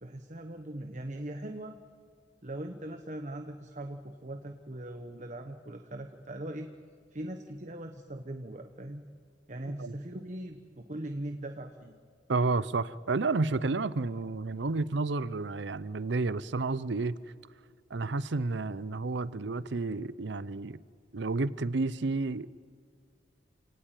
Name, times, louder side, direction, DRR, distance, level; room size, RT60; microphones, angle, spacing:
voice 1, 0.0-1.8 2.4-6.7 7.1-9.0 9.5-11.9, right 1 dB, 40° right, 1.1 m, -40 dB
voice 2, 12.3-17.2 17.9-20.8 21.1-22.5, right 3 dB, 65° right, 0.6 m, -31 dB
28.5 x 18.0 x 9.0 m
head